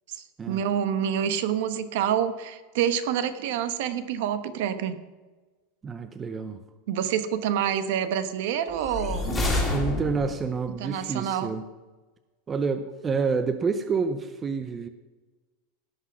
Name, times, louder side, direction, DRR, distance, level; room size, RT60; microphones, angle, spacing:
voice 1, 0.1-5.0 6.9-9.4 10.8-11.5, right 9 dB, 60° right, 11 dB, 1.0 m, -27 dB
voice 2, 5.8-6.6 9.7-11.6 12.5-14.9, right 5 dB, 15° right, 9 dB, 0.5 m, -28 dB
sound 1, 8.7-10.5, left 2 dB, 10° left, 2.2 m, -28 dB
17.5 x 6.0 x 6.1 m, 1.2 s
supercardioid pair, 170°, 0 cm